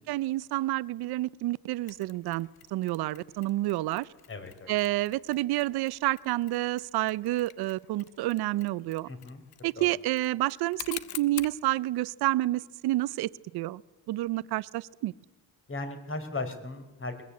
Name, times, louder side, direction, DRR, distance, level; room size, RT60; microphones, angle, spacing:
voice 1, 0.1-4.1 4.7-9.1 9.6-13.8 14.1-15.1, right 17 dB, 75° right, 19 dB, 0.7 m, -29 dB
Mechanisms, 1.9-11.6, left 13 dB, 70° left, 1.1 m, -47 dB
voice 2, 4.3-4.7 9.1-9.4 9.8-9.9 15.7-17.2, left 3 dB, 30° left, 7 dB, 4.0 m, -37 dB
21.5 x 20.5 x 8.4 m, 1.1 s
cardioid pair, 105°, 39 cm